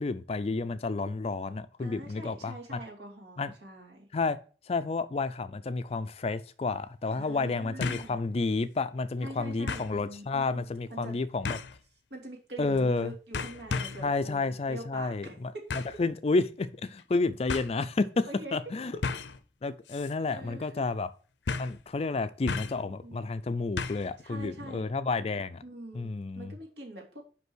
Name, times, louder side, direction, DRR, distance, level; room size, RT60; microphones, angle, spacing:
voice 1, 0.0-2.8 3.4-3.5 4.1-4.4 4.7-11.6 12.6-13.1 14.0-18.3 18.5-18.9 19.6-21.1 21.6-25.6 25.9-26.5, left 3 dB, 35° left, 0.4 m, -30 dB
voice 2, 1.8-4.0 7.1-8.2 9.2-11.1 12.1-15.4 18.3-18.6 20.2-20.8 23.0-23.2 24.2-24.8 25.6-26.1 26.3-27.3, right 1 dB, 75° right, 2.7 m, -44 dB
sound 1, 5.9-6.0 7.8-8.1 8.6-8.7 9.7-9.9 11.4-11.8 12.7-13.0 13.3-14.1 15.7-16.0 17.0-17.1 17.5-17.7 19.0-19.4 19.9-20.1 20.4-20.5 21.5-21.8 22.5-22.9 23.8-24.1 24.4-24.5, left 4 dB, 85° left, 0.6 m, -34 dB
5.5 x 5.3 x 6.1 m
head